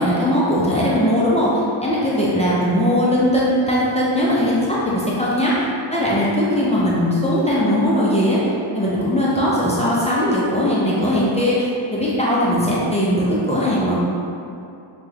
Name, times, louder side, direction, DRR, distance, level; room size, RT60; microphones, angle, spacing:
voice 1, 0.0-5.5 5.9-8.4 8.7-14.0, equal, 15° left, -8 dB, 0.4 m, -19 dB
2.9 x 2.3 x 3.2 m, 2.6 s
wide cardioid pair, 115°, 48 cm